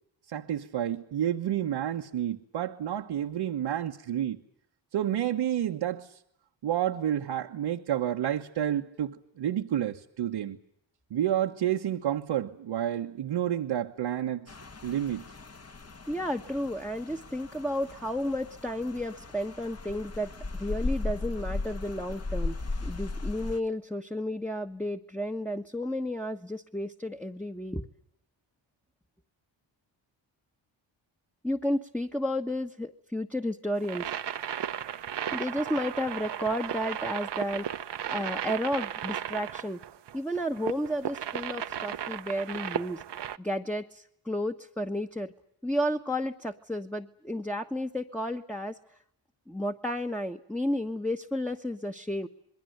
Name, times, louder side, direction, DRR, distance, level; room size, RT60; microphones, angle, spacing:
voice 1, 0.3-4.4 4.9-6.1 6.6-10.6 11.1-14.5 14.8-15.2, right 11 dB, 80° right, 1.5 m, -30 dB
Rain, 14.5-23.6, left 3 dB, 30° left, 1.5 m, -37 dB
voice 2, 16.1-20.3 20.6-27.9 31.4-34.1 35.3-37.7 38.1-39.8 40.1-43.0 43.4-45.3 45.6-48.7 49.5-52.3, equal, 5° left, 1.3 m, -32 dB
sound 1, 33.8-43.4, right 10 dB, 65° right, 1.0 m, -35 dB
27.5 x 21.5 x 8.0 m
cardioid pair, 75°, 46 cm